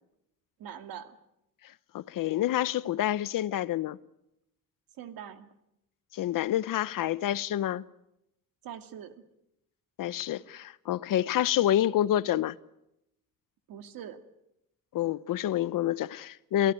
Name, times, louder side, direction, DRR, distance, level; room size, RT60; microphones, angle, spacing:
voice 1, 0.6-1.2 5.0-5.5 8.6-9.1 13.7-14.2, right 9 dB, 90° right, 2.3 m, -43 dB
voice 2, 1.9-4.0 6.1-7.8 10.0-12.6 14.9-16.7, left 12 dB, 70° left, 0.9 m, -28 dB
28.0 x 17.0 x 9.3 m
cardioid pair, 170°, 34 cm